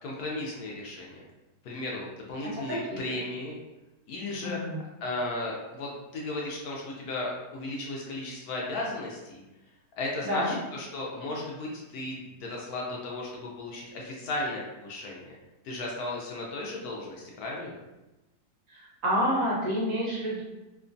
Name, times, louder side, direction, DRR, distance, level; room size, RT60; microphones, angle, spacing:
voice 1, 0.0-1.2 1.6-3.6 4.1-4.6 5.0-9.4 10.0-15.4 15.6-17.8, left 2 dB, 70° left, -2 dB, 1.0 m, -35 dB
voice 2, 2.7-3.2 4.4-4.8 10.3-10.6 18.7-20.4, equal, 65° right, -5 dB, 1.0 m, -29 dB
2.9 x 2.3 x 2.5 m, 1.0 s
omnidirectional pair, 1.8 m